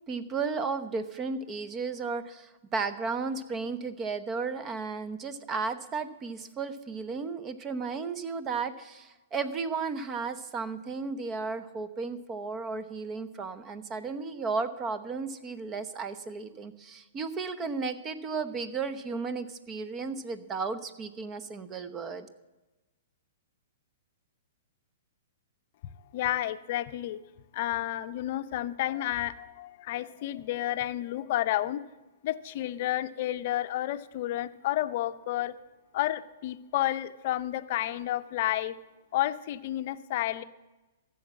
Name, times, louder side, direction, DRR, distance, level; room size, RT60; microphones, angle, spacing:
voice 1, 0.1-22.3, right 4 dB, 25° right, 13 dB, 0.9 m, -34 dB
voice 2, 26.1-27.2 27.5-31.8 32.2-35.5 35.9-38.7 39.1-40.4, left 14 dB, 50° left, 12 dB, 0.6 m, -31 dB
14.5 x 7.2 x 7.3 m, 1.1 s
hypercardioid pair, 115°, 0 cm